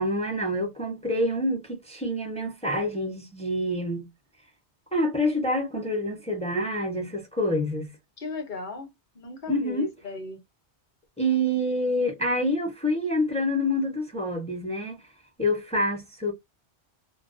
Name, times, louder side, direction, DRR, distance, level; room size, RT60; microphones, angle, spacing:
voice 1, 0.0-4.1 4.9-8.0 9.5-9.9 11.2-15.0 15.4-16.3, equal, 10° left, 0.5 m, -27 dB
voice 2, 8.2-10.4, left 3 dB, 50° left, 0.8 m, -37 dB
2.3 x 2.2 x 2.5 m
omnidirectional pair, 1.2 m